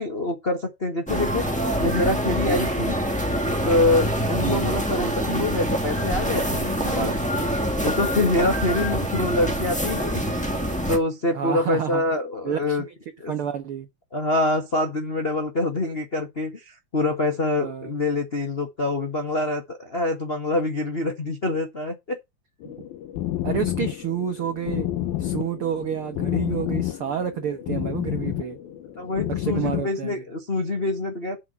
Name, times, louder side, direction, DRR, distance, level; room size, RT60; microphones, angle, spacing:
voice 1, 0.0-1.4 1.8-3.0 3.6-7.1 7.8-10.2 10.9-12.8 13.2-13.3 14.1-22.2 29.0-31.4, left 2 dB, 55° left, 0.6 m, -25 dB
sound 1, 1.1-11.0, equal, 5° left, 0.8 m, -25 dB
voice 2, 4.4-4.7 6.8-7.2 11.3-12.0 12.4-12.9 13.3-13.9 17.6-17.9 22.6-22.7 23.4-24.9 25.2-28.6 29.4-30.2, right 8 dB, 80° right, 1.2 m, -29 dB
sound 2, 22.6-29.8, left 13 dB, 85° left, 3.1 m, -29 dB
7.7 x 7.4 x 5.7 m
omnidirectional pair, 4.1 m